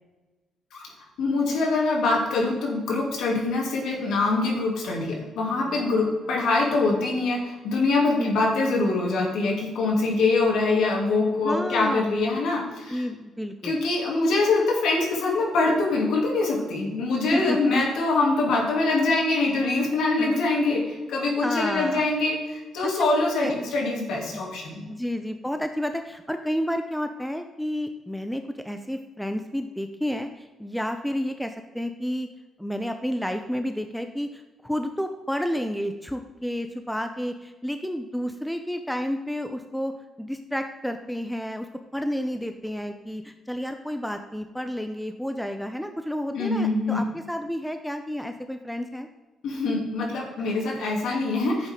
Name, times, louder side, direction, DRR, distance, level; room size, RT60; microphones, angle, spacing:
voice 1, 1.2-13.0 13.6-24.8 46.3-47.0 49.4-51.7, left 3 dB, 75° left, -1 dB, 3.0 m, -24 dB
voice 2, 5.6-6.3 8.2-8.8 11.4-12.1 12.9-13.8 17.3-17.9 20.2-20.5 21.4-22.0 22.8-23.1 23.4-23.5 24.3-24.4 24.8-32.3 32.6-49.1, equal, 5° left, 7 dB, 0.7 m, -31 dB
10.5 x 8.0 x 3.8 m, 1.2 s
cardioid pair, 90°, 0 cm